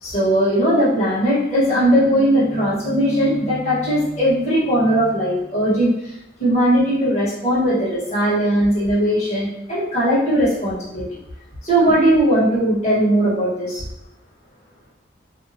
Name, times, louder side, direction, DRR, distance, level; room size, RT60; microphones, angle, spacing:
voice 1, 0.0-6.1 6.4-11.0 11.6-13.9, right 1 dB, 40° left, -9 dB, 1.2 m, -18 dB
2.7 x 2.2 x 2.7 m, 0.86 s
head